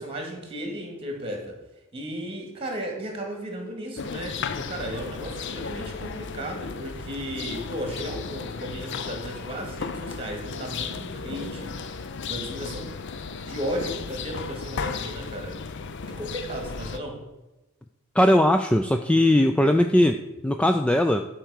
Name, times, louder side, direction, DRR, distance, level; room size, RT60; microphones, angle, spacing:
voice 1, 0.0-1.6 1.9-12.9 13.4-15.6 16.1-17.2, equal, 25° right, 2 dB, 2.2 m, -35 dB
sound 1, 4.0-17.0, left 5 dB, 55° left, 0.6 m, -35 dB
voice 2, 18.1-21.3, left 1 dB, 5° left, 6 dB, 0.3 m, -20 dB
11.5 x 4.6 x 6.5 m, 1.0 s
head